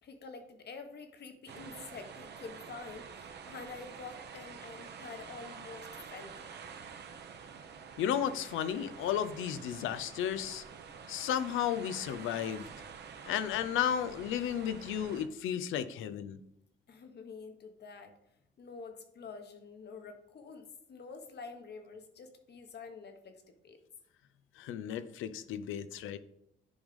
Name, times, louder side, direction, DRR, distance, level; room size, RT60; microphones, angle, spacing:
voice 1, 0.0-6.5 16.9-18.2 18.6-23.8, left 4 dB, 55° left, 6 dB, 1.3 m, -48 dB
sound 1, 1.5-15.3, right 6 dB, 60° right, 0.9 m, -48 dB
voice 2, 8.0-10.6 11.1-12.7 13.3-16.4 24.6-26.2, left 9 dB, 85° left, 13 dB, 0.6 m, -33 dB
10.5 x 3.6 x 5.2 m, 0.77 s
cardioid pair, 90°, 20 cm